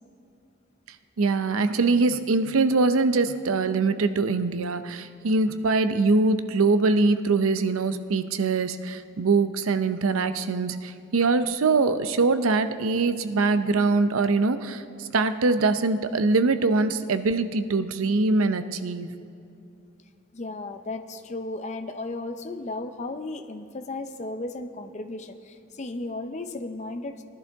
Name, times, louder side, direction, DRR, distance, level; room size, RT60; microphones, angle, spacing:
voice 1, 1.2-19.1, right 3 dB, 80° right, 11 dB, 0.6 m, -23 dB
voice 2, 20.3-27.2, left 2 dB, 35° left, 8 dB, 0.6 m, -35 dB
19.0 x 11.5 x 3.5 m, 2.7 s
head